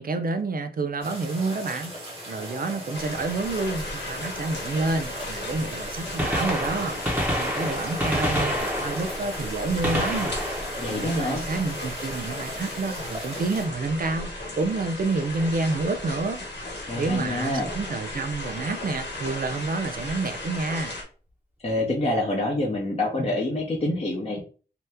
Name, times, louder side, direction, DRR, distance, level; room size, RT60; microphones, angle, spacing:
voice 1, 0.0-7.0 7.4-10.3 10.9-14.3 14.6-16.4 17.0-20.9, right 3 dB, 55° right, 0.4 m, -29 dB
sound 1, 1.0-13.7, equal, 35° right, 1.5 m, -38 dB
sound 2, 2.9-21.0, left 1 dB, 85° left, 1.0 m, -36 dB
Gunshot gunfire, 5.5-5.6 6.0-11.9 13.8-14.0 15.0-15.1 16.7-16.8 18.2-18.3 18.5-18.6, equal, 10° right, 1.0 m, -29 dB
voice 2, 10.8-11.4 16.9-17.7 21.6-24.4, left 1 dB, 35° left, 0.7 m, -26 dB
2.8 x 2.1 x 3.4 m
wide cardioid pair, 75°, 18 cm